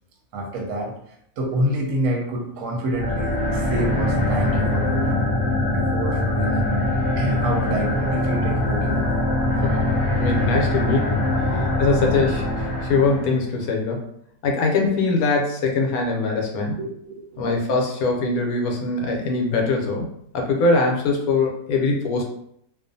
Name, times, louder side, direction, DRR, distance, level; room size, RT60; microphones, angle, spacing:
voice 1, 0.3-0.9 1.4-5.3 5.7-6.8 7.2-9.2 11.5-11.7 16.5-17.3, right 1 dB, 65° right, 0 dB, 0.9 m, -28 dB
sound 1, 2.9-13.4, left 1 dB, 60° left, 0.8 m, -22 dB
voice 2, 9.6-9.9 10.2-14.0 14.4-16.8 17.4-22.2, left 3 dB, 75° left, 1 dB, 1.0 m, -22 dB
2.5 x 2.4 x 2.5 m, 0.71 s
omnidirectional pair, 1.6 m